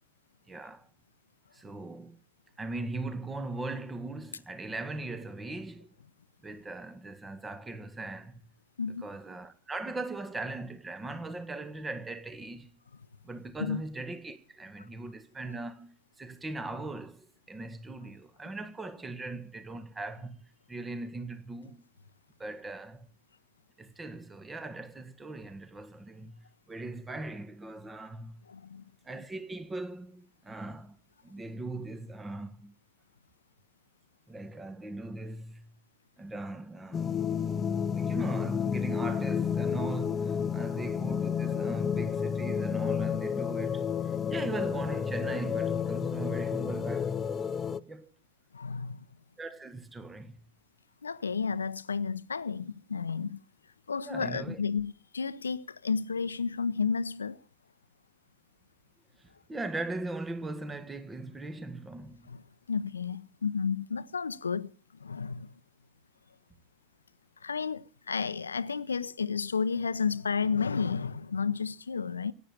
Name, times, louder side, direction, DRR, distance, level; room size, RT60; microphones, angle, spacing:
voice 1, 0.5-0.9 1.5-2.2 2.6-5.9 6.4-8.4 9.0-12.7 13.2-21.8 22.4-23.1 23.8-28.4 29.0-31.0 31.2-32.7 34.3-35.7 36.2-37.2 37.9-47.2 47.9-48.1 49.4-50.4 54.0-54.6 59.2-62.2, right 2 dB, 15° right, 1.7 m, -39 dB
voice 2, 28.5-28.8 48.5-49.0 51.0-53.4 53.9-57.4 62.3-62.4 62.7-64.7 65.0-65.5 67.4-72.3, left 5 dB, 85° left, 0.8 m, -32 dB
sound 1, 36.9-47.8, left 7 dB, 25° left, 0.9 m, -31 dB
17.5 x 9.3 x 8.5 m
hypercardioid pair, 90°, 0 cm